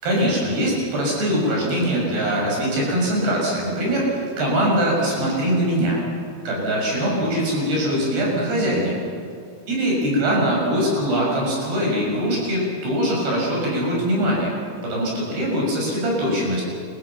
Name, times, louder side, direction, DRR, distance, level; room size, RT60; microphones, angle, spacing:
voice 1, 0.0-6.0 6.4-9.0 9.7-14.5 14.8-16.6, equal, 90° right, -2 dB, 8.4 m, -22 dB
29.0 x 15.0 x 7.3 m, 2.5 s
omnidirectional pair, 4.6 m